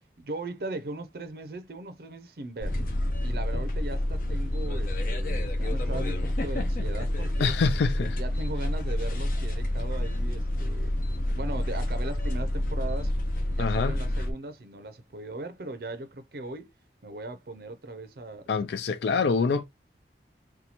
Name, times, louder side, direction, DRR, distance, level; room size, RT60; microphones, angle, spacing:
voice 1, 0.2-2.8 3.2-7.5 8.2-11.0 11.3-13.1 13.5-16.7 17.0-18.5, right 2 dB, 60° right, 0.5 m, -38 dB
sound 1, 2.6-14.3, left 1 dB, 50° left, 0.8 m, -28 dB
sound 2, 5.3-7.8 8.2-11.0, right 1 dB, 15° left, 0.7 m, -51 dB
voice 2, 7.4-8.2 13.6-13.9 18.5-19.6, left 5 dB, 75° left, 0.4 m, -25 dB
2.8 x 2.2 x 4.1 m
head